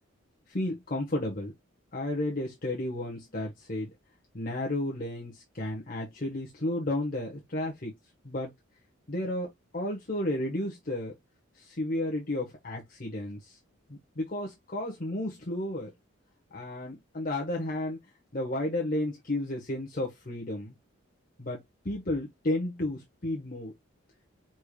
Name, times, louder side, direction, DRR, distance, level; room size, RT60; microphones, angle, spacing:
voice 1, 0.5-1.5 1.9-3.9 4.3-8.0 8.2-8.5 9.1-11.1 11.6-13.6 13.9-15.9 16.5-18.0 18.3-20.7 21.4-23.7, left 1 dB, 40° left, 1.2 m, -32 dB
4.9 x 4.5 x 2.3 m
head